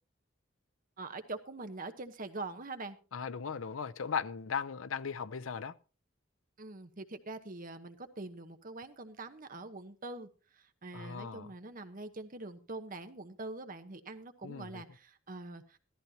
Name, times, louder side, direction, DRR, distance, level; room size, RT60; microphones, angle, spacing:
voice 1, 1.0-3.0 6.6-10.3 10.5-15.8, right 2 dB, 45° right, 1.1 m, -44 dB
voice 2, 3.1-5.7 10.9-11.5 14.4-14.8, left 6 dB, 80° left, 0.6 m, -37 dB
16.0 x 13.5 x 2.8 m
head